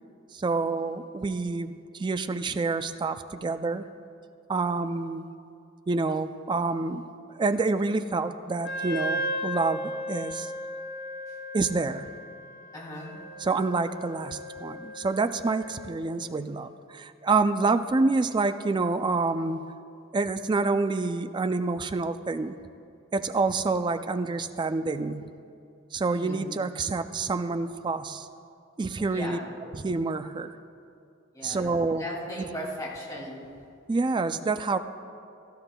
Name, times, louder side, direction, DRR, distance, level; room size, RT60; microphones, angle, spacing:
voice 1, 0.3-3.9 4.5-5.3 5.9-7.1 7.4-10.5 11.5-12.1 13.4-19.7 20.1-22.6 23.1-25.3 25.9-28.3 28.8-29.4 29.7-30.5 31.4-32.0 33.9-34.8, right 3 dB, 25° right, 10 dB, 0.3 m, -27 dB
Wind instrument woodwind instrument, 8.6-16.0, equal, 60° left, 0.9 m, -36 dB
voice 2, 12.7-13.1 26.1-26.5 29.1-29.4 31.3-33.4, equal, 20° left, -5 dB, 2.5 m, -37 dB
16.0 x 14.0 x 2.2 m, 2.4 s
head